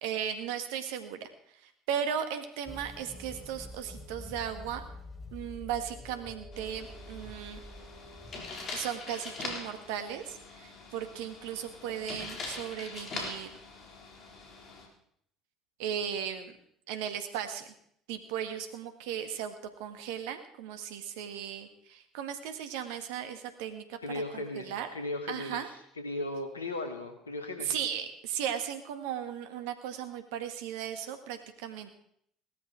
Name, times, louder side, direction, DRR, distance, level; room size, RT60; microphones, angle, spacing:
voice 1, 0.0-4.8 5.3-7.6 8.7-13.6 15.8-16.5 16.9-17.7 18.1-19.5 19.8-24.9 25.3-25.7 27.6-31.9, right 9 dB, 70° right, 8 dB, 1.8 m, -36 dB
sound 1, 2.6-8.5, left 1 dB, 15° left, 3.7 m, -46 dB
sound 2, 6.5-14.9, left 3 dB, 40° left, 3.9 m, -43 dB
voice 2, 24.0-25.6 26.0-27.8, left 2 dB, 85° left, 5 dB, 2.2 m, -36 dB
18.0 x 13.0 x 4.7 m, 0.69 s
figure-of-eight pair, 60°, 0 cm